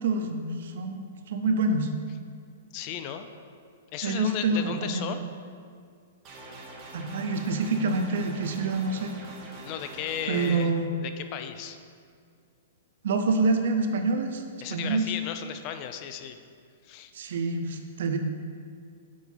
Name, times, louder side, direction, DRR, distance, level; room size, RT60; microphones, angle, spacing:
voice 1, 0.0-1.9 4.0-5.2 6.9-9.1 10.3-10.9 13.0-14.4 14.7-15.1 17.1-18.2, right 3 dB, 70° right, 5 dB, 0.7 m, -27 dB
voice 2, 2.7-3.3 3.9-5.2 9.6-10.7 11.0-11.8 14.6-16.4 16.8-17.1, left 9 dB, 40° left, 8 dB, 0.5 m, -35 dB
sound 1, 6.2-10.6, right 2 dB, 30° right, 1.6 m, -44 dB
6.1 x 4.5 x 5.4 m, 2.2 s
hypercardioid pair, 130°, 0 cm